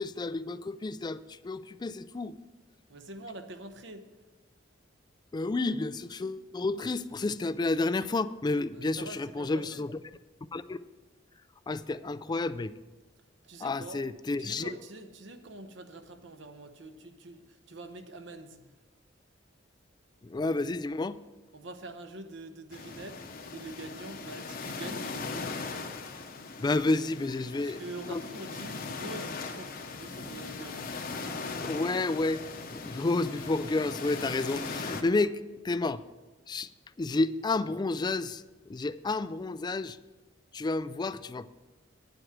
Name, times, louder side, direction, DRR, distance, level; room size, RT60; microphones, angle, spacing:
voice 1, 0.0-2.4 5.3-10.0 10.5-10.8 11.7-12.7 13.6-14.7 20.2-21.2 26.6-27.8 28.1-28.2 31.6-32.4 32.7-35.4 35.6-36.0 36.5-36.7 37.0-40.0 40.5-41.5, left 3 dB, 20° left, 15 dB, 0.3 m, -30 dB
voice 2, 2.9-4.1 8.7-9.9 13.4-14.0 14.4-18.6 21.5-23.2 23.5-25.6 27.6-30.9, right 2 dB, 70° right, 8 dB, 1.0 m, -45 dB
sound 1, 22.7-35.0, left 4 dB, 50° left, 0.9 m, -39 dB
10.0 x 7.8 x 5.9 m, 1.2 s
head